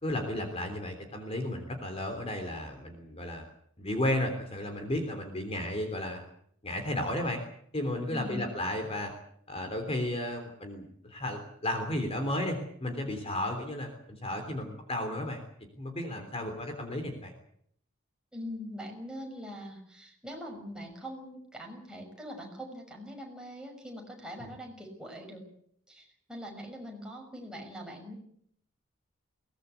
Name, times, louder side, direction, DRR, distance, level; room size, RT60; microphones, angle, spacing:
voice 1, 0.0-3.4 3.8-6.2 6.6-7.4 7.7-9.1 9.5-15.4 15.8-17.3 24.4-24.5, left 1 dB, 30° left, 5 dB, 3.4 m, -33 dB
voice 2, 8.1-8.4 18.3-25.4 25.9-28.1, equal, 5° right, 1 dB, 6.1 m, -42 dB
22.5 x 19.0 x 8.3 m, 0.67 s
head